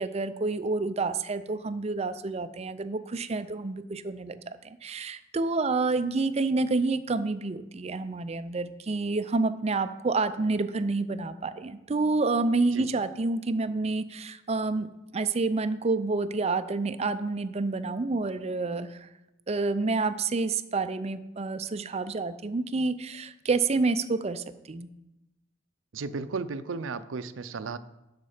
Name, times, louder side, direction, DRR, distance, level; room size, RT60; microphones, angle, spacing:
voice 1, 0.0-19.1 19.5-24.9, right 3 dB, 35° right, 13 dB, 0.5 m, -28 dB
voice 2, 25.9-27.8, right 4 dB, 90° right, 13 dB, 0.5 m, -34 dB
11.0 x 6.5 x 5.0 m, 0.95 s
head